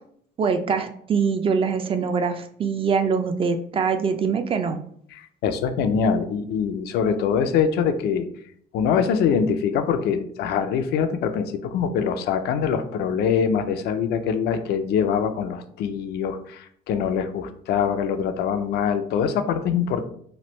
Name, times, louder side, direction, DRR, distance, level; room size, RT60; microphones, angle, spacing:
voice 1, 0.4-4.8, right 5 dB, 35° right, 7 dB, 0.3 m, -23 dB
voice 2, 5.1-8.3 8.7-20.0, left 7 dB, 75° left, 9 dB, 0.4 m, -24 dB
3.1 x 2.5 x 3.0 m, 0.64 s
cardioid pair, 110°, 17 cm